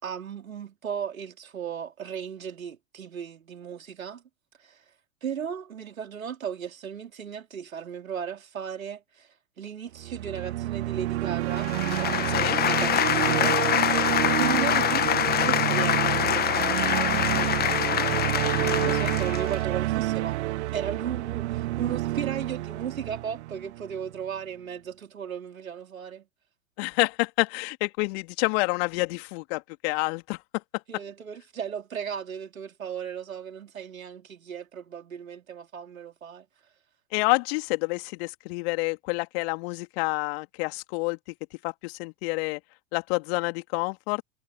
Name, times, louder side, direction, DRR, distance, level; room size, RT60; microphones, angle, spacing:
voice 1, 0.0-4.2 4.6-4.8 5.2-13.9 14.2-18.2 18.8-20.4 20.7-26.2 30.9-36.5, right 8 dB, 75° right, 4.6 m, -36 dB
sound 1, 9.9-24.1, right 17 dB, 55° right, 1.8 m, -29 dB
sound 2, 11.5-19.6, left 10 dB, 20° left, 1.5 m, -25 dB
voice 2, 26.8-30.6 37.1-41.2 41.6-42.6 42.9-44.2, left 28 dB, 45° left, 2.9 m, -28 dB
figure-of-eight pair, 95°, 41 cm